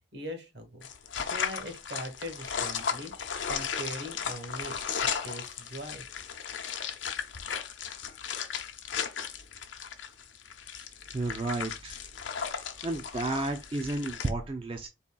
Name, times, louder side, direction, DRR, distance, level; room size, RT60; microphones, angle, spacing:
voice 1, 0.1-0.8 1.2-3.1 3.5-4.7 5.0-6.1, equal, 65° right, 1.4 m, -40 dB
sound 1, 0.8-14.3, left 7 dB, 90° left, 0.7 m, -36 dB
voice 2, 11.1-12.0 12.8-14.9, right 2 dB, 30° right, 0.4 m, -32 dB
4.1 x 3.3 x 2.2 m
head